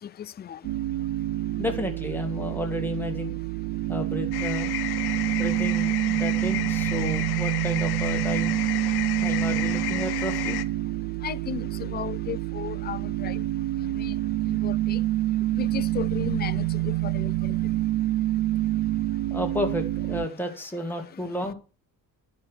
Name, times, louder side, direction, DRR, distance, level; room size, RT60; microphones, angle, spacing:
voice 1, 0.2-0.6 11.2-13.4 13.8-14.1 14.5-15.0 15.5-17.5, left 9 dB, 30° left, 0.4 m, -35 dB
sound 1, 0.6-20.3, right 16 dB, 70° right, 0.5 m, -27 dB
voice 2, 1.6-3.4 3.9-4.7 5.4-8.6 9.2-10.6 19.3-21.5, left 1 dB, 5° left, 2.1 m, -31 dB
sound 2, 4.3-10.6, left 15 dB, 85° left, 0.8 m, -33 dB
10.5 x 5.3 x 6.4 m
cardioid pair, 115°, 37 cm